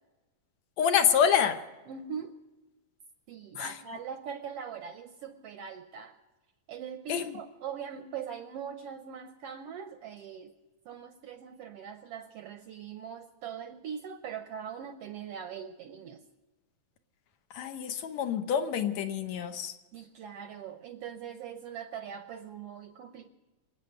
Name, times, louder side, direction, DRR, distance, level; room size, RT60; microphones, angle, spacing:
voice 1, 0.8-1.6 3.6-3.7 7.1-7.2 17.5-19.7, left 8 dB, 70° left, 7 dB, 2.2 m, -27 dB
voice 2, 1.9-2.4 3.3-6.2 6.7-10.5 10.8-16.2 19.9-23.3, right 7 dB, 70° right, 8 dB, 1.5 m, -41 dB
25.5 x 8.6 x 6.4 m, 1.1 s
omnidirectional pair, 3.3 m